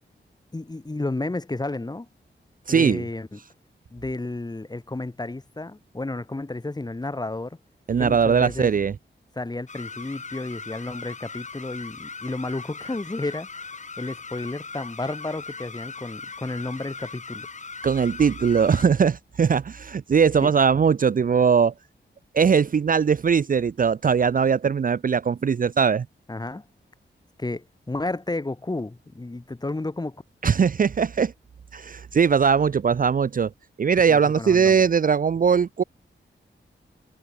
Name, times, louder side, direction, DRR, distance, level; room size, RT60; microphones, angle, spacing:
voice 1, 0.5-2.1 2.7-3.4 3.9-7.6 8.0-8.7 9.3-17.5 20.4-20.5 26.3-26.6 27.4-30.2 34.1-34.8, left 2 dB, 20° left, 2.6 m, -32 dB
voice 2, 2.7-3.0 7.9-8.9 17.8-21.7 22.3-26.1 30.4-31.3 31.7-33.5 33.8-35.8, right 6 dB, 45° right, 0.5 m, -20 dB
sound 1, 9.7-18.8, left 4 dB, 40° left, 1.4 m, -39 dB
wide cardioid pair, 120°, 20 cm